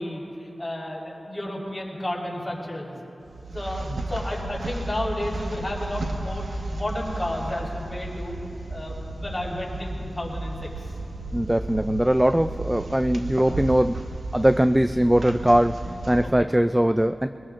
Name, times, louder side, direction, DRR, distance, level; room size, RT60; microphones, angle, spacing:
voice 1, 0.0-2.9 3.5-6.4 6.7-8.4 8.7-10.7 14.3-14.4 16.2-16.5, left 1 dB, 20° left, -4 dB, 4.2 m, -32 dB
sound 1, 3.2-16.3, right 2 dB, 85° right, 1.2 m, -34 dB
voice 2, 11.3-14.0 14.3-17.3, right 1 dB, 10° right, 10 dB, 0.3 m, -21 dB
23.5 x 20.0 x 2.5 m, 2.8 s
wide cardioid pair, 75°, 0 cm